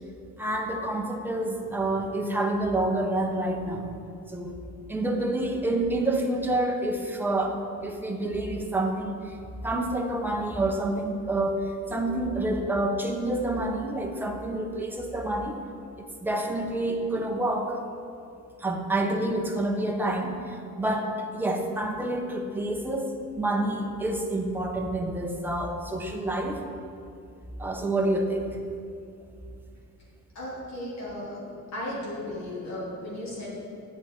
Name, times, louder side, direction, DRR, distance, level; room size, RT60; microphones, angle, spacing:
voice 1, 0.4-3.9 4.3-4.6 4.9-9.2 9.6-15.6 16.2-17.8 18.6-26.6 27.6-28.5, right 1 dB, 5° right, 2 dB, 0.7 m, -28 dB
voice 2, 30.3-31.4 31.7-33.5, left 1 dB, 55° left, -6 dB, 2.3 m, -35 dB
9.3 x 8.0 x 4.2 m, 2.6 s
wide cardioid pair, 175°, 32 cm